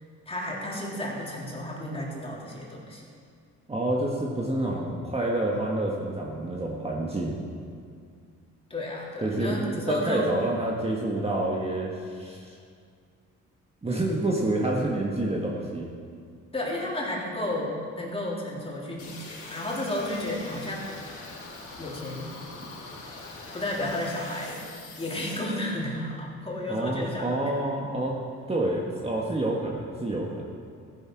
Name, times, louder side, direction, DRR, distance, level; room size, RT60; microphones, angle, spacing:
voice 1, 0.0-3.1 8.7-10.3 16.5-21.0 21.8-22.3 23.5-24.6 25.0-27.4, left 1 dB, 20° left, -4 dB, 3.5 m, -32 dB
voice 2, 3.7-7.4 9.2-12.6 13.8-15.9 26.7-28.2 28.5-30.4, right 1 dB, 20° right, -2 dB, 1.5 m, -28 dB
sound 1, 19.0-25.4, left 3 dB, 80° left, 3.2 m, -43 dB
14.5 x 11.0 x 4.8 m, 2.2 s
cardioid pair, 90°, 30 cm